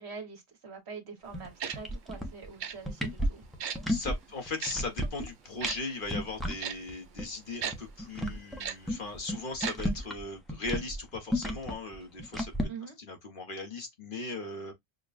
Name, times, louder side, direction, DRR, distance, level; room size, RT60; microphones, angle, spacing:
voice 1, 0.0-3.4 12.7-13.0, right 5 dB, 75° right, 1.5 m, -44 dB
sound 1, 1.3-1.5 1.7-2.5 2.8-4.1 4.5-5.3 5.6-5.8 6.0-6.5 6.9-7.0 7.2-7.3 7.6-10.2 10.5-12.6, equal, ahead, 0.7 m, -32 dB
Tick-tock, 1.6-1.8 2.6-2.7 3.6-3.8 4.6-4.7 5.6-5.8 6.6-6.7 7.6-7.7 8.6-8.7 9.6-9.7 10.0-10.1, right 8 dB, 55° right, 0.6 m, -34 dB
voice 2, 3.9-12.7 13.0-14.7, left 3 dB, 50° left, 1.2 m, -38 dB
6.3 x 2.2 x 2.4 m
omnidirectional pair, 1.1 m